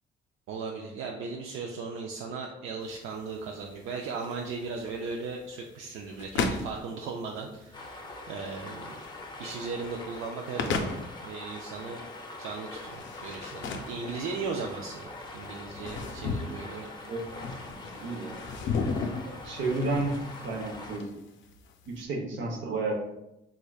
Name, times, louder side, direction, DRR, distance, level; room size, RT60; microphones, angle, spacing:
voice 1, 0.5-9.0 9.4-12.0 12.4-16.9, right 4 dB, 90° right, 0 dB, 0.4 m, -37 dB
sound 1, 2.8-22.0, left 4 dB, 75° left, 0.4 m, -37 dB
sound 2, 7.7-21.0, left 2 dB, 20° left, 0.5 m, -43 dB
voice 2, 18.0-18.4 19.3-20.1 20.4-21.1 21.9-22.9, right 3 dB, 70° right, 1 dB, 0.9 m, -31 dB
3.7 x 3.2 x 2.3 m, 0.91 s
cardioid pair, 90°, 20 cm